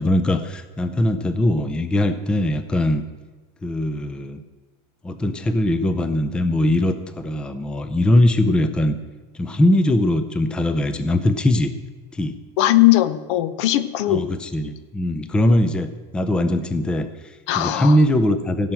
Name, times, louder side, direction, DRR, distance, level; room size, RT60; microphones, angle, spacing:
voice 1, 0.0-3.0 3.6-4.4 5.0-9.0 9.3-11.7 12.1-12.3 14.1-18.7, left 1 dB, 5° left, 10 dB, 0.4 m, -21 dB
voice 2, 12.6-14.3 17.5-18.0, left 15 dB, 70° left, 14 dB, 0.8 m, -18 dB
16.5 x 5.6 x 7.6 m, 1.2 s
cardioid pair, 175°, 15 cm